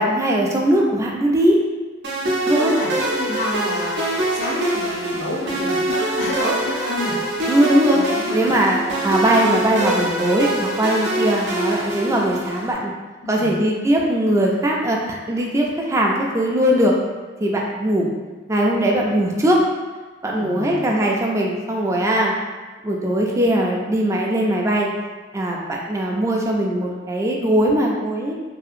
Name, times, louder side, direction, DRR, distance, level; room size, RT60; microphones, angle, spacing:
voice 1, 0.0-1.6 2.5-2.7 7.5-8.0 8.3-12.9 13.3-17.0 17.4-18.1 18.5-19.6 20.2-22.3 22.8-24.9 25.3-28.3, right 1 dB, 15° right, -2 dB, 0.3 m, -20 dB
sound 1, 2.0-12.7, right 1 dB, 70° right, 0.5 m, -24 dB
voice 2, 2.7-7.1 7.9-8.5 13.2-13.5 20.3-21.0, left 1 dB, 85° left, -3 dB, 0.6 m, -29 dB
2.7 x 2.4 x 2.5 m, 1.3 s
head